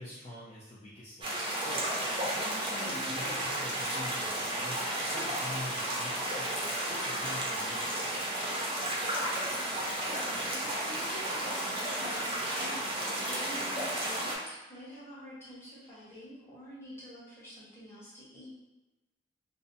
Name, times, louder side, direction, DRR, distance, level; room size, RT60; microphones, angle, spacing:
voice 1, 0.0-6.5 6.9-8.2, left 1 dB, 40° left, -8 dB, 0.4 m, -45 dB
sound 1, 1.2-14.4, right 1 dB, 30° right, 0.5 m, -33 dB
voice 2, 2.8-3.2 10.0-18.5, equal, 15° left, -9 dB, 0.9 m, -47 dB
2.6 x 2.0 x 2.6 m, 1.1 s
head